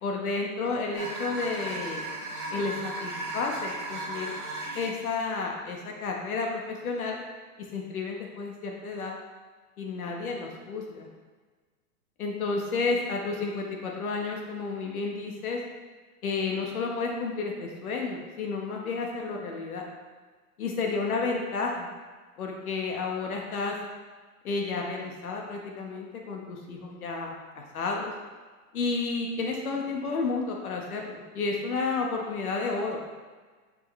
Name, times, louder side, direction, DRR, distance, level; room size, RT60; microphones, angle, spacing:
voice 1, 0.0-2.1 2.5-4.3 4.7-7.2 7.6-9.1 9.8-11.1 12.2-15.6 16.2-19.8 20.6-21.9 22.4-23.8 24.4-27.3 27.7-28.1 28.7-33.0, left 4 dB, 65° left, 0 dB, 1.3 m, -31 dB
sound 1, 0.9-5.0, right 2 dB, 20° right, 0.5 m, -36 dB
6.2 x 5.7 x 3.2 m, 1.4 s
hypercardioid pair, 170°, 46 cm